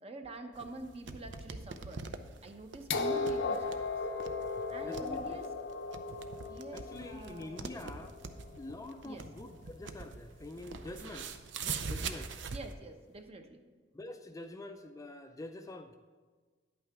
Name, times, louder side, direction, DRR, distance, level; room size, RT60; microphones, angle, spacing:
voice 1, 0.0-2.1 2.4-3.9 4.7-5.5 6.5-7.6 9.0-9.2 12.5-13.6, right 2 dB, 35° right, 5 dB, 0.8 m, -46 dB
sound 1, 0.5-12.7, right 5 dB, 75° right, 0.6 m, -44 dB
sound 2, 2.9-8.8 9.9-10.0, left 3 dB, 75° left, 0.7 m, -37 dB
voice 2, 4.8-5.5 6.7-8.2 8.6-12.5 13.9-16.0, left 2 dB, 20° left, 6 dB, 0.4 m, -46 dB
10.5 x 8.6 x 3.6 m, 1.4 s
head